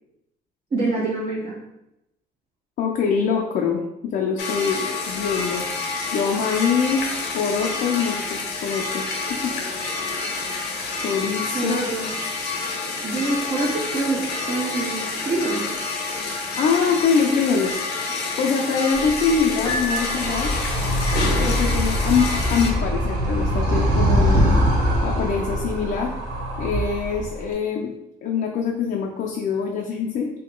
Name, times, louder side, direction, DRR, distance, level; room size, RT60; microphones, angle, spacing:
voice 1, 0.7-1.6 11.5-12.1 13.0-15.8, right 2 dB, 35° right, -5 dB, 0.8 m, -26 dB
voice 2, 2.8-5.7 6.1-9.5 11.0-11.9 16.6-17.8 18.4-20.5 21.4-24.5 25.0-26.1 26.6-27.9 28.2-30.3, left 6 dB, 60° left, -1 dB, 0.5 m, -24 dB
sound 1, 4.4-22.7, left 3 dB, 80° left, 0.9 m, -28 dB
Animal, 18.9-27.5, equal, 80° right, 0.9 m, -23 dB
Piano, 19.7-20.9, equal, 25° left, 0.7 m, -30 dB
3.0 x 2.8 x 3.6 m, 0.86 s
cardioid pair, 110°, 17 cm